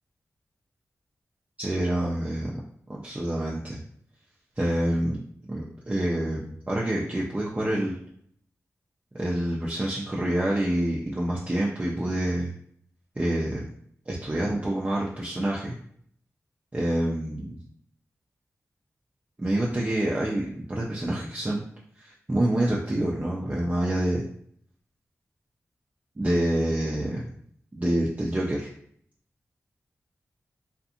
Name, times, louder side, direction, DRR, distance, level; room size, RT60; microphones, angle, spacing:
voice 1, 1.6-2.5 2.9-3.8 4.6-5.2 5.5-8.0 9.1-12.5 13.2-13.7 14.1-15.7 16.7-17.6 19.4-21.6 22.0-24.2 26.2-27.2 27.8-28.7, right 1 dB, 25° right, -4 dB, 0.5 m, -27 dB
2.5 x 2.4 x 2.7 m, 0.64 s
cardioid pair, 50°, 6 cm